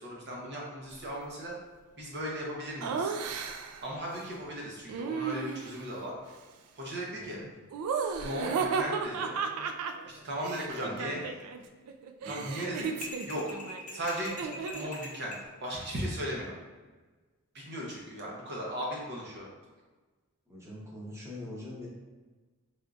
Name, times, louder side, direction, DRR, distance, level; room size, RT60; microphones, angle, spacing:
voice 1, 0.0-1.5 2.0-3.1 3.8-6.2 6.7-7.4 8.2-9.3 10.0-11.2 12.3-12.9 13.3-13.6 13.9-15.3 15.6-16.5 17.5-19.5, equal, 55° right, -3 dB, 0.7 m, -37 dB
Laughter, 2.8-3.8 4.9-5.9 7.7-11.6 11.9-15.0, right 5 dB, 85° right, 0.3 m, -34 dB
voice 2, 7.1-7.5 10.7-11.4 12.2-12.5 20.5-21.9, left 1 dB, 15° right, -6 dB, 0.9 m, -44 dB
sound 1, 13.0-15.5, left 2 dB, 35° left, 0.8 m, -43 dB
3.8 x 3.5 x 2.4 m, 1.3 s
head